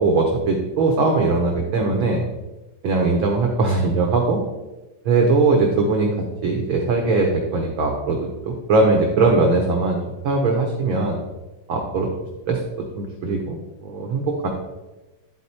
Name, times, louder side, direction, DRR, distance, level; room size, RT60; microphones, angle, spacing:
voice 1, 0.0-2.2 2.8-4.4 5.0-6.1 6.4-10.0 10.2-11.2 11.7-12.1 12.5-12.6 12.9-14.5, right 3 dB, 85° right, 1 dB, 1.1 m, -20 dB
12.0 x 4.3 x 4.2 m, 1.1 s
omnidirectional pair, 3.6 m